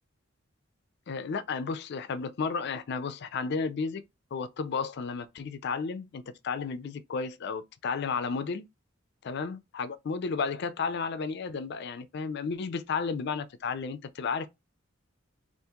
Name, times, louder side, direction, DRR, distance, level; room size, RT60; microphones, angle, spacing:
voice 1, 1.1-4.0 4.3-8.6 9.2-14.5, left 5 dB, 60° left, 0.4 m, -33 dB
2.8 x 2.5 x 3.5 m
head